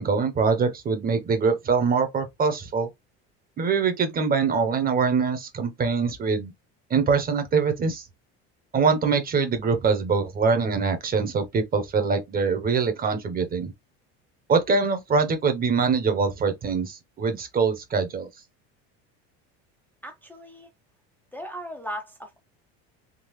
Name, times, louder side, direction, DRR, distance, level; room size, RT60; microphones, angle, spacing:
voice 1, 0.0-2.9 3.6-6.5 6.9-8.0 8.7-13.7 14.5-18.3, right 5 dB, 30° right, 1.0 m, -23 dB
voice 2, 20.0-20.7 21.3-22.4, equal, 5° left, 0.6 m, -37 dB
3.8 x 2.4 x 3.1 m
cardioid pair, 125°, 30 cm